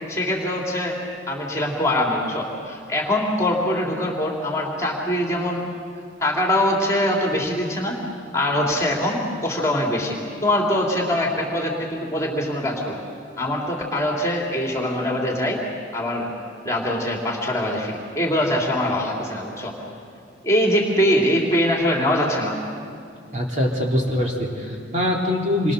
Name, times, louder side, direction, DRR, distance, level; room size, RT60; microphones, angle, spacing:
voice 1, 0.1-1.0 1.3-5.7 6.2-8.0 8.3-13.0 13.4-15.6 15.9-16.3 16.6-19.7 20.4-22.6, left 1 dB, 15° left, -1 dB, 3.2 m, -23 dB
voice 2, 23.3-25.7, left 1 dB, 35° right, -2 dB, 3.6 m, -23 dB
28.0 x 24.0 x 6.8 m, 2.3 s
head